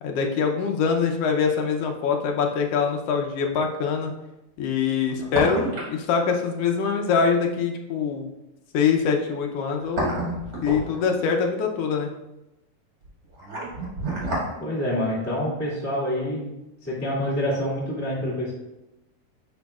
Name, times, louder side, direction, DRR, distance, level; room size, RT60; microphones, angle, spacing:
voice 1, 0.0-4.1 4.6-8.3 8.7-10.1 10.6-12.1, left 6 dB, 75° left, 2 dB, 1.4 m, -24 dB
sound 1, 1.8-1.9 4.9-6.0 6.3-6.4 9.5-11.3 13.0-14.5 14.8-14.9, right 1 dB, 35° right, 1.9 m, -29 dB
voice 2, 14.6-16.5 16.8-18.5, equal, 5° left, -7 dB, 1.5 m, -27 dB
10.5 x 4.4 x 2.4 m, 0.95 s
omnidirectional pair, 3.4 m